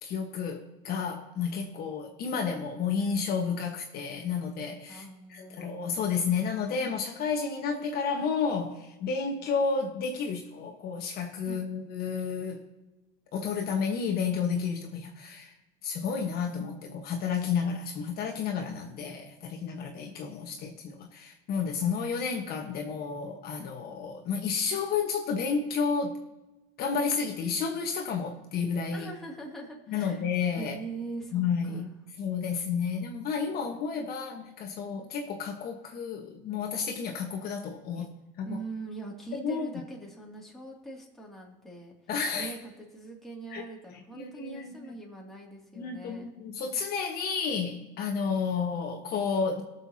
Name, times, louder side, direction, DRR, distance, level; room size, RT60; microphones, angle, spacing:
voice 1, 0.0-5.0 5.3-12.6 13.3-15.5 15.8-26.2 26.8-29.1 29.9-30.7 31.3-31.9 32.2-38.1 38.4-38.6 39.3-39.7 42.1-42.5 43.5-43.6 44.1-45.0 45.8-49.6, left 5 dB, 50° left, 3 dB, 1.3 m, -31 dB
voice 2, 4.9-5.7 11.4-11.6 28.9-30.2 30.6-31.9 34.9-35.1 38.0-38.1 38.4-41.9 42.3-46.3, right 3 dB, ahead, -3 dB, 2.5 m, -42 dB
20.5 x 6.9 x 2.9 m, 1.0 s
supercardioid pair, 120°, 20 cm